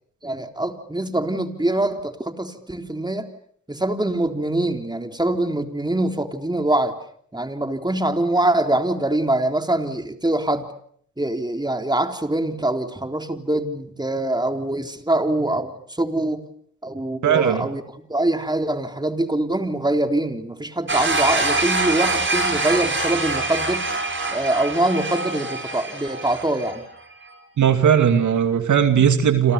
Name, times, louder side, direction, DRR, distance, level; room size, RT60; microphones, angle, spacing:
voice 1, 0.2-3.3 3.7-7.0 7.3-10.7 11.2-16.4 16.8-17.8 18.1-23.9 24.3-26.8, right 1 dB, 15° right, 6 dB, 3.6 m, -24 dB
voice 2, 17.2-17.7 27.6-29.5, right 8 dB, 90° right, 8 dB, 2.6 m, -17 dB
sound 1, 20.9-26.8, right 2 dB, 40° right, 6.6 m, -24 dB
29.5 x 26.5 x 6.9 m, 0.64 s
cardioid pair, 55°, 29 cm